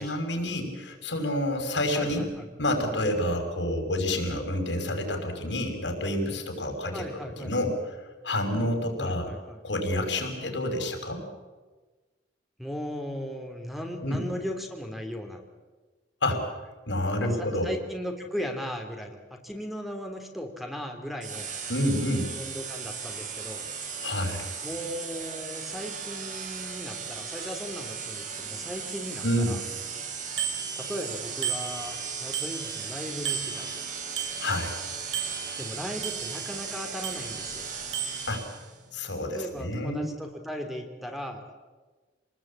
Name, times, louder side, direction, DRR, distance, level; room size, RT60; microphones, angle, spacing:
voice 1, 0.0-2.3 2.6-7.0 7.4-7.7 8.2-9.3 9.6-11.2 14.0-14.2 16.2-16.5 16.9-17.7 21.7-22.3 24.0-24.5 29.2-29.6 34.4-34.8 38.3-38.4 38.9-40.0, left 1 dB, 80° left, 4 dB, 5.9 m, -28 dB
voice 2, 1.9-2.5 6.9-7.5 9.0-9.6 12.6-15.4 17.2-21.5 22.3-23.6 24.6-29.6 30.8-33.7 35.6-37.7 39.3-41.4, equal, ahead, 4 dB, 2.9 m, -37 dB
sound 1, 21.2-38.8, right 6 dB, 45° right, 4.1 m, -37 dB
Bicycle bell, 30.4-31.1 31.4-32.9 33.3-34.8 35.1-36.6 37.0-37.6 37.9-38.3, right 7 dB, 85° right, 5.2 m, -35 dB
28.0 x 20.0 x 8.7 m, 1.3 s
head